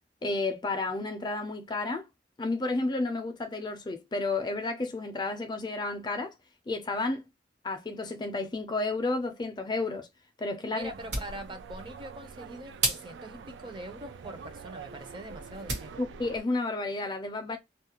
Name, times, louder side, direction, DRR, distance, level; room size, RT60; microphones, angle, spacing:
voice 1, 0.2-2.1 2.4-6.3 6.7-7.3 7.6-10.1 10.4-10.9 16.0-17.6, left 2 dB, 25° left, 0.4 m, -31 dB
voice 2, 10.7-16.0, right 1 dB, 25° right, 0.5 m, -43 dB
sound 1, 10.8-15.9, right 2 dB, 65° right, 1.2 m, -37 dB
sound 2, 10.8-16.4, right 5 dB, 85° right, 0.3 m, -46 dB
2.3 x 2.1 x 2.8 m
head